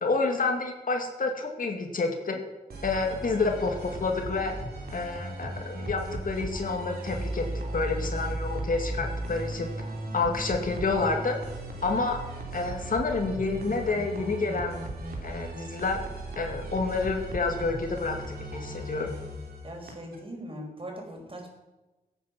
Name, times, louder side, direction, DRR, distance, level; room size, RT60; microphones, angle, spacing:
voice 1, 0.0-2.4 2.8-4.6 4.9-7.5 7.7-9.7 10.1-11.4 11.8-12.2 12.5-14.8 15.2-16.0 16.4-18.2 18.5-19.1, left 3 dB, 60° left, 3 dB, 2.2 m, -29 dB
sound 1, 2.7-20.2, right 1 dB, 80° right, 3.0 m, -36 dB
voice 2, 19.6-21.5, equal, 35° right, 1 dB, 5.1 m, -40 dB
16.5 x 8.9 x 6.0 m, 1.1 s
cardioid pair, 55°, 16 cm